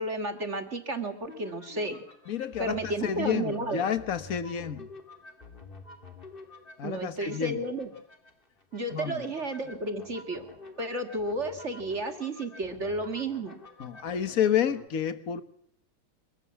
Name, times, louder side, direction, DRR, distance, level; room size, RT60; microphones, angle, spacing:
voice 1, 0.0-2.0 2.6-3.9 6.8-7.9 8.7-10.5 10.8-13.6, right 2 dB, 35° right, 7 dB, 2.0 m, -32 dB
sound 1, 1.3-14.9, left 3 dB, 25° left, 2.2 m, -49 dB
voice 2, 2.3-4.9 6.8-7.6 8.9-9.2 13.8-15.4, left 8 dB, 45° left, 11 dB, 1.6 m, -29 dB
24.0 x 15.0 x 8.5 m, 0.68 s
omnidirectional pair, 2.3 m